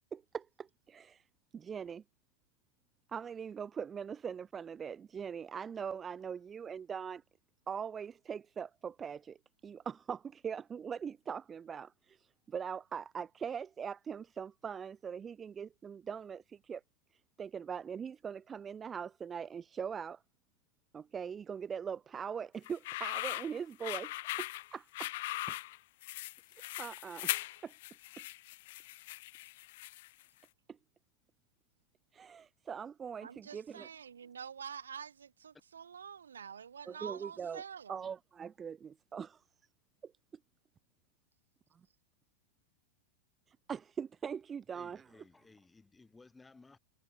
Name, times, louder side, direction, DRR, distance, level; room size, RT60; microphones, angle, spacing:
voice 1, 0.1-1.2 1.5-2.0 3.1-7.2 7.7-9.4 9.6-16.8 17.1-20.2 20.9-24.1 24.4-25.1 25.5-25.6 26.8-27.3 27.6-27.7 30.7-30.8 32.1-33.9 36.9-37.6 37.9-39.4 40.0-40.1 43.5-45.0, right 7 dB, 20° right, 0.6 m, -41 dB
sound 1, 22.6-30.2, left 18 dB, 50° left, 0.7 m, -40 dB
voice 2, 33.2-38.0, right 7 dB, 70° right, 0.8 m, -47 dB
voice 3, 44.7-46.8, left 3 dB, 10° left, 3.4 m, -59 dB
figure-of-eight pair, 90°, 0 cm